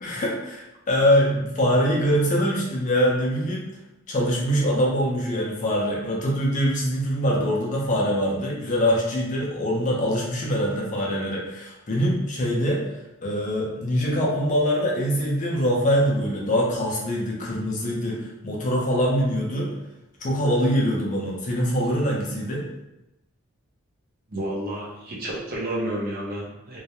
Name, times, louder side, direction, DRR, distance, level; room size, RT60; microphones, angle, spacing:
voice 1, 0.0-3.7 4.1-12.8 13.2-19.7 20.2-22.6, equal, 35° left, -3 dB, 0.4 m, -23 dB
voice 2, 24.3-26.8, right 1 dB, 40° right, -4 dB, 0.5 m, -30 dB
2.2 x 2.0 x 2.8 m, 0.91 s
head